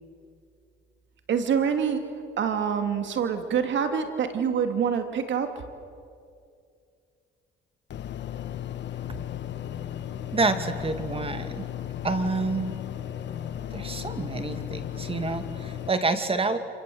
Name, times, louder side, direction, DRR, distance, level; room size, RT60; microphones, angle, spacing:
voice 1, 1.3-2.0 2.4-5.5, right 7 dB, 70° right, 7 dB, 2.6 m, -26 dB
sound 1, 7.9-15.9, left 10 dB, 65° left, 1.3 m, -35 dB
voice 2, 10.3-11.7 12.0-12.7 13.7-16.6, right 3 dB, 30° right, 8 dB, 2.4 m, -28 dB
28.0 x 26.5 x 7.9 m, 2.4 s
cardioid pair, 90°, 20 cm